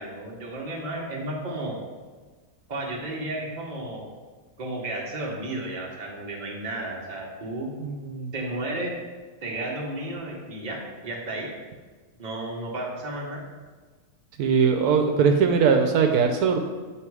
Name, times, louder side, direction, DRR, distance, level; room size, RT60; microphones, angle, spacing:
voice 1, 0.0-1.8 2.7-4.1 4.6-7.7 8.3-8.9 9.4-11.5 12.2-13.4, right 1 dB, 30° right, -2 dB, 1.1 m, -33 dB
voice 2, 7.8-8.3 14.4-16.6, right 6 dB, 80° right, 5 dB, 1.1 m, -21 dB
8.3 x 2.9 x 4.7 m, 1.4 s
omnidirectional pair, 1.6 m